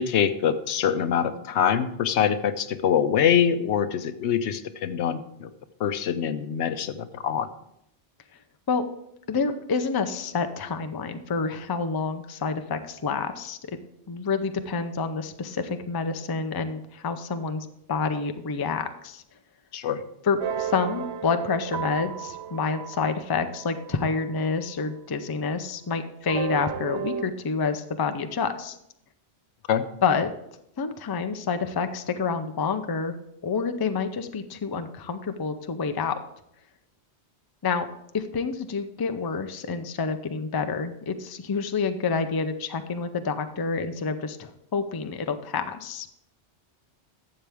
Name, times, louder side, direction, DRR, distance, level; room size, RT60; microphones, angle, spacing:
voice 1, 0.0-5.5 5.8-7.5 19.7-20.0 29.7-29.8, left 8 dB, 80° left, 11 dB, 0.9 m, -24 dB
voice 2, 9.3-13.8 14.1-19.2 20.2-28.8 30.0-30.3 30.8-33.2 33.4-36.2 37.6-37.9 38.1-46.1, left 5 dB, 30° left, 8 dB, 0.4 m, -28 dB
sound 1, 20.4-25.0 26.3-27.2, right 7 dB, 80° right, 0.9 m, -34 dB
12.0 x 7.6 x 3.5 m, 0.78 s
omnidirectional pair, 1.2 m